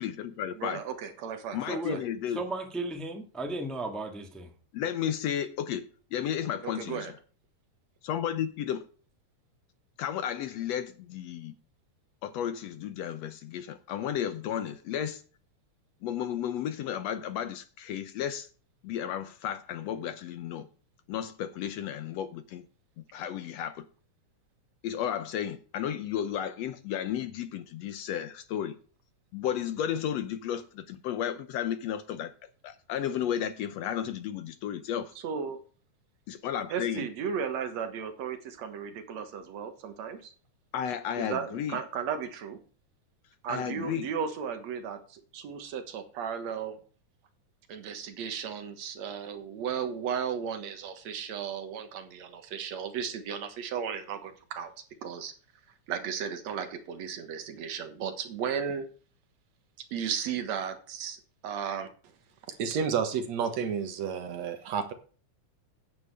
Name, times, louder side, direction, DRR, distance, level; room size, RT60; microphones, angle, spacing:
voice 1, 0.0-0.8 1.5-2.4 4.7-7.2 8.0-8.9 10.0-11.5 12.2-15.2 16.0-18.5 18.8-20.7 21.1-22.7 23.0-23.9 24.8-28.8 29.3-32.3 32.6-35.1 36.3-37.1 40.7-41.8 43.5-44.1, left 9 dB, 70° left, 1.7 m, -33 dB
voice 2, 0.6-2.0 6.6-7.1 35.2-35.6 36.7-40.3 41.2-42.6 43.4-46.8 47.7-54.7 55.0-55.3 55.9-58.9 59.9-61.9 62.5-64.9, right 7 dB, 65° right, 2.5 m, -34 dB
voice 3, 1.7-2.0 2.3-4.5, right 2 dB, ahead, 0.8 m, -35 dB
9.4 x 9.0 x 4.8 m
omnidirectional pair, 3.5 m